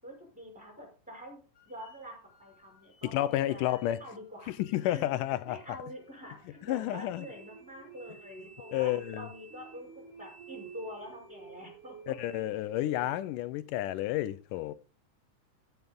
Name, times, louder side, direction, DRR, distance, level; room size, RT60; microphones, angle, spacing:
voice 1, 0.0-4.5 4.8-11.9, equal, ahead, 5.3 m, -46 dB
sound 1, 1.5-12.4, right 1 dB, 45° left, 1.5 m, -60 dB
voice 2, 3.1-4.0 4.5-5.6 6.6-7.3 8.7-9.3 12.1-14.7, left 14 dB, 80° left, 2.2 m, -31 dB
sound 2, 5.3-13.2, right 7 dB, 70° right, 2.3 m, -52 dB
16.0 x 7.0 x 3.7 m
omnidirectional pair, 4.0 m